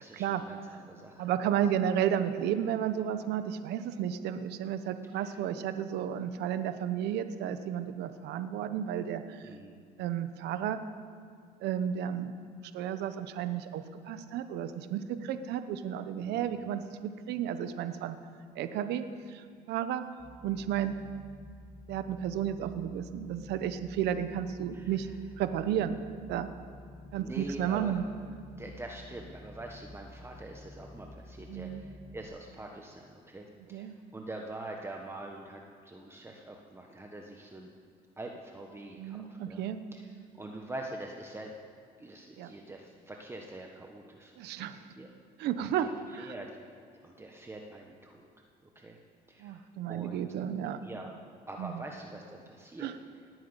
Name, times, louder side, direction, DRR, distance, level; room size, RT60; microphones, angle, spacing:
voice 1, 0.0-1.3 5.1-5.4 9.4-9.7 16.2-16.5 24.7-24.9 27.2-27.9 28.5-37.7 38.2-39.6 39.9-40.1 40.4-41.5 42.0-45.1 45.6-46.5 47.0-48.3 48.7-49.0 49.3-49.6 49.9-50.2 50.8-51.1 51.5-52.9, right 2 dB, 15° right, 1 dB, 1.3 m, -44 dB
voice 2, 1.2-9.5 10.0-10.8 11.6-12.4 12.7-18.2 18.6-20.1 20.4-20.9 21.9-25.1 25.4-26.0 26.3-26.5 27.1-28.0 31.5-31.8 33.7-33.9 39.0-39.8 42.4-42.5 44.4-44.8 45.4-46.3 49.4-50.8 51.6-51.8 52.8-52.9, right 9 dB, 80° right, 10 dB, 1.1 m, -32 dB
sound 1, 20.2-32.2, left 1 dB, ahead, 4.1 m, -50 dB
19.0 x 9.4 x 8.1 m, 2.2 s
cardioid pair, 110°, 17 cm